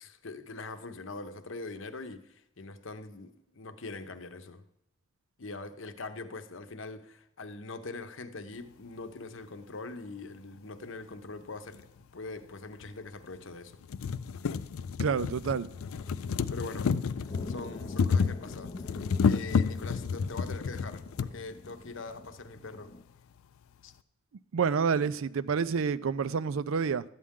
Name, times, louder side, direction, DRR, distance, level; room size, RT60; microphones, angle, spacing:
voice 1, 0.0-4.6 5.4-13.8 16.5-23.0 23.8-23.9, left 3 dB, 70° left, 0.8 m, -43 dB
sound 1, 11.7-11.8 12.8-12.9 13.4-13.5 13.7-21.3 22.2-22.3 22.6-22.7, left 5 dB, 90° left, 0.4 m, -30 dB
voice 2, 15.0-15.7 24.5-27.0, right 6 dB, 80° right, 0.4 m, -28 dB
sound 2, 15.5-23.0, left 2 dB, 30° left, 0.5 m, -46 dB
12.5 x 8.6 x 3.6 m
head